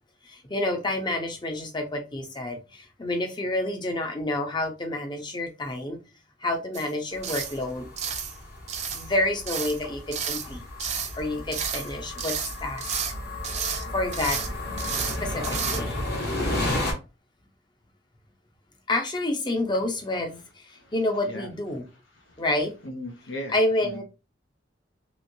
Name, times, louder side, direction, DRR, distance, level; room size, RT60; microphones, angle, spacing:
voice 1, 0.2-6.0 6.4-7.9 8.9-12.8 13.9-14.4 15.2-16.0 18.9-21.8 22.4-22.7 23.5-24.0, left 1 dB, 25° left, 0.7 m, -29 dB
sound 1, 6.7-6.9 7.2-7.6 8.0-8.4 8.7-9.1 9.5-9.8 10.1-10.5 10.8-11.2 11.5-11.9 12.2-13.1 13.4-13.8 14.1-14.5 14.8-15.2 15.4-15.8, right 7 dB, 35° right, 0.5 m, -31 dB
sound 2, 7.1-16.9, left 2 dB, 55° left, 1.3 m, -33 dB
voice 2, 22.8-23.5 23.8-24.0, left 1 dB, 85° left, 0.8 m, -37 dB
3.1 x 3.0 x 2.6 m
head